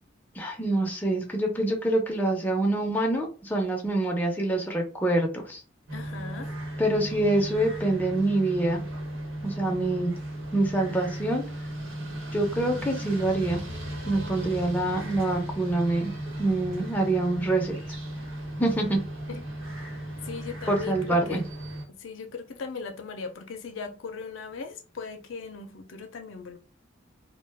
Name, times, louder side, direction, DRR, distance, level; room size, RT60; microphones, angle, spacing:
voice 1, 0.4-5.6 6.8-8.8 9.4-10.1 10.5-11.4 12.3-13.6 14.1-16.1 16.4-17.8 18.6-19.0 20.7-21.4, right 2 dB, 10° left, 0.5 m, -26 dB
voice 2, 5.9-6.5 19.3-19.4 20.2-21.4 21.9-26.6, left 5 dB, 80° left, 0.5 m, -38 dB
sound 1, 5.9-21.8, right 1 dB, 90° right, 1.1 m, -36 dB
2.3 x 2.2 x 3.3 m
head